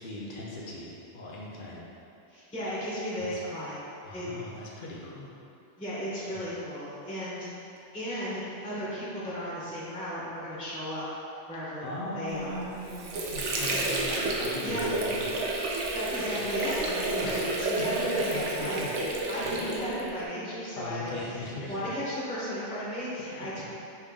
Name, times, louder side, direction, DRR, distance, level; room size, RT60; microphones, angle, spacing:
voice 1, 0.0-1.8 3.2-3.4 4.0-5.3 6.3-6.4 11.8-14.1 14.4-15.7 16.3-16.4 17.2-17.7 18.1-18.9 19.4-19.6 20.8-21.8 23.4-23.6, left 1 dB, 50° left, -4 dB, 0.8 m, -39 dB
voice 2, 2.3-3.8 4.1-4.4 5.8-11.0 11.5-12.6 13.7-13.8 14.6-14.9 15.7-19.0 19.3-21.4 21.7-23.6, equal, 5° left, -10 dB, 0.8 m, -35 dB
Water / Sink (filling or washing), 12.6-20.2, right 2 dB, 90° right, 0.9 m, -30 dB
5.7 x 2.5 x 3.6 m, 2.7 s
omnidirectional pair, 1.2 m